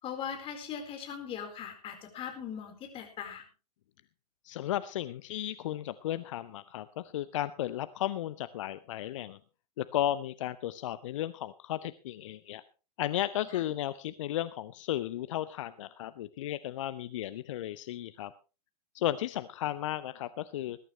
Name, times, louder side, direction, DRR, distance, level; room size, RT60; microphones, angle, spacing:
voice 1, 0.0-3.4 13.5-13.6, left 8 dB, 25° left, 4 dB, 4.3 m, -40 dB
voice 2, 4.4-9.4 9.8-12.6 13.0-18.3 18.9-20.8, left 12 dB, 50° left, 15 dB, 0.7 m, -34 dB
20.5 x 12.0 x 3.2 m, 0.33 s
figure-of-eight pair, 105°, 21 cm